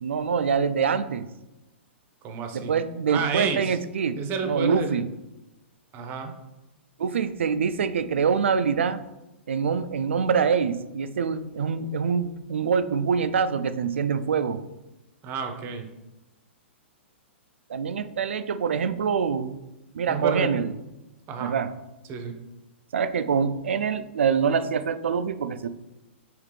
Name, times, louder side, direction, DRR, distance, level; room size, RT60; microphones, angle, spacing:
voice 1, 0.0-1.3 2.5-5.0 7.0-9.0 9.5-14.6 17.7-19.6 19.9-20.7 21.4-21.7 22.9-25.7, right 6 dB, 75° right, 12 dB, 0.3 m, -25 dB
voice 2, 2.2-2.7 3.1-3.8 4.2-4.9 5.9-6.3 15.2-15.9 20.1-20.6 21.3-21.5 22.1-22.4, right 5 dB, 30° right, 5 dB, 0.7 m, -30 dB
5.0 x 3.1 x 3.2 m, 0.98 s
hypercardioid pair, 115°, 7 cm